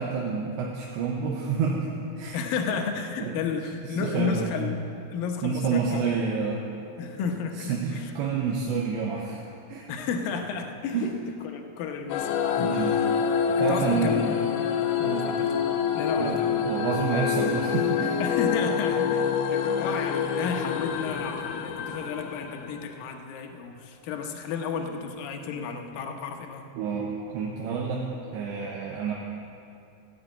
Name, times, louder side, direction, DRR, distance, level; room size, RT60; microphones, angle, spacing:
voice 1, 0.0-1.9 2.2-2.4 3.2-3.4 3.8-4.6 5.4-6.7 7.6-9.4 9.7-9.9 10.9-11.1 12.6-12.9 13.5-14.4 15.0-15.3 16.0-18.2 26.7-28.1 28.3-29.1, right 5 dB, 85° right, -2 dB, 3.4 m, -29 dB
voice 2, 2.3-4.8 5.1-6.2 7.0-8.0 9.9-11.1 11.4-13.0 13.6-14.3 15.0-15.5 15.9-16.6 18.2-26.7, left 5 dB, 70° left, 4 dB, 2.3 m, -32 dB
sound 1, 12.1-23.0, left 7 dB, 90° left, 3.1 m, -27 dB
15.5 x 8.1 x 8.4 m, 2.6 s
omnidirectional pair, 5.1 m